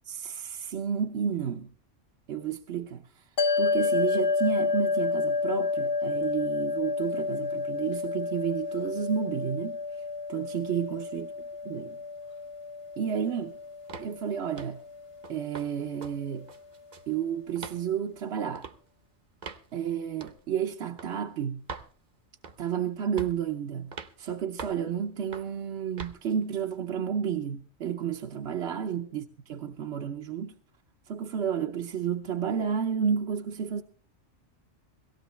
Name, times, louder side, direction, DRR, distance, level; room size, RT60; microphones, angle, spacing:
voice 1, 0.1-1.7 2.3-3.0 3.6-9.8 10.3-11.3 11.7-11.9 13.0-13.5 14.0-14.8 15.3-16.5 17.1-18.7 19.7-21.6 22.6-29.2 29.5-30.6 31.1-33.8, right 8 dB, 65° right, 1.0 m, -31 dB
sound 1, 3.4-15.9, left 4 dB, 55° left, 1.4 m, -30 dB
sound 2, 13.9-14.1 14.6-14.8 15.2-15.7 16.0-16.2 16.5-17.1 17.6-17.8 18.6-18.8 19.4-19.7 20.2-20.4 21.0-21.1 21.7-21.9 22.4-22.7 23.2-23.4 23.9-24.1 24.6-24.8 25.3-25.5 26.0-26.2, right 5 dB, 40° right, 0.9 m, -41 dB
17.5 x 15.5 x 3.2 m
omnidirectional pair, 1.2 m